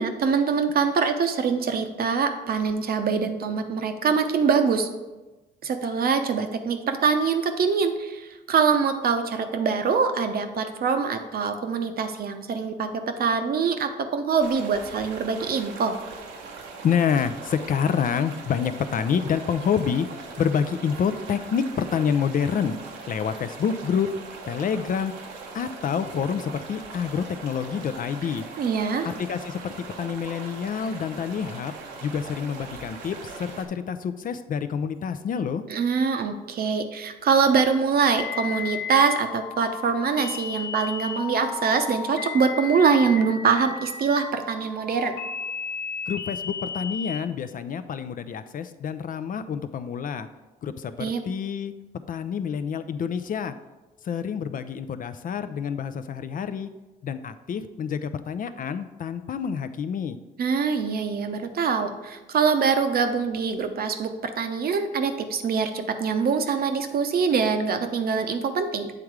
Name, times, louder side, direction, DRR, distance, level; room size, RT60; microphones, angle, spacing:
voice 1, 0.0-4.9 5.6-16.0 28.6-29.1 35.7-45.1 51.0-51.2 60.4-68.9, right 5 dB, 55° right, 7 dB, 0.7 m, -24 dB
sound 1, 14.4-33.7, right 4 dB, 85° right, 0.9 m, -41 dB
voice 2, 16.8-20.1 20.4-22.7 23.1-24.1 24.5-25.1 25.5-28.4 29.0-29.7 30.0-31.7 32.0-35.6 46.1-50.3 50.6-51.7 52.1-53.5 54.0-56.7 57.0-60.2, left 7 dB, 50° left, 11 dB, 0.5 m, -27 dB
sound 2, 38.2-47.2, left 6 dB, 70° left, 1.0 m, -34 dB
7.7 x 3.6 x 4.7 m, 1.1 s
supercardioid pair, 70°, 18 cm